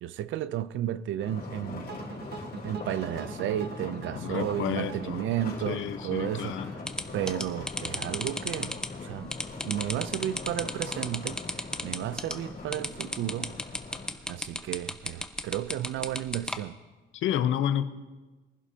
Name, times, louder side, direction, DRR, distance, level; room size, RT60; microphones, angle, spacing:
voice 1, 0.0-2.0 2.6-6.8 7.1-8.8 9.0-9.3 9.6-13.5 14.3-16.8, right 12 dB, 75° right, 0.5 m, -33 dB
sound 1, 1.2-14.1, left 3 dB, 50° left, 3.2 m, -41 dB
sound 2, 1.9-7.0, right 6 dB, 55° right, 1.0 m, -44 dB
voice 2, 4.1-5.2 5.7-6.7 17.1-17.9, left 10 dB, 80° left, 0.8 m, -30 dB
sound 3, 6.9-16.6, left 1 dB, 5° left, 0.8 m, -34 dB
22.5 x 11.0 x 2.8 m
cardioid pair, 90°, 20 cm